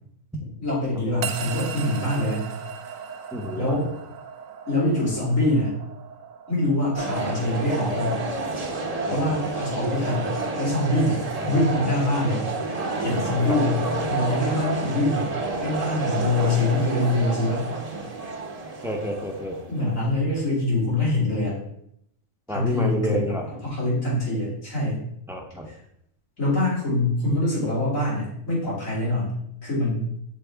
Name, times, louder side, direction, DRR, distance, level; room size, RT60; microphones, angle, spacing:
voice 1, 0.6-2.5 3.5-3.9 4.7-5.7 6.5-8.2 9.1-10.3 10.6-11.2 11.5-12.5 13.0-15.3 15.6-17.6 19.7-21.6 22.5-25.0 25.7-25.8 26.4-30.1, left 2 dB, 85° left, -7 dB, 3.2 m, -24 dB
sound 1, 1.2-11.6, right 7 dB, 90° right, 1.0 m, -39 dB
voice 2, 3.3-3.8 9.1-9.3 11.4-11.6 13.5-13.6 18.8-19.6 22.5-23.4 25.3-25.7, equal, 5° right, 1 dB, 0.5 m, -29 dB
sound 2, 6.9-19.8, right 3 dB, 35° right, 0.8 m, -29 dB
6.1 x 4.6 x 3.4 m, 0.74 s
omnidirectional pair, 1.4 m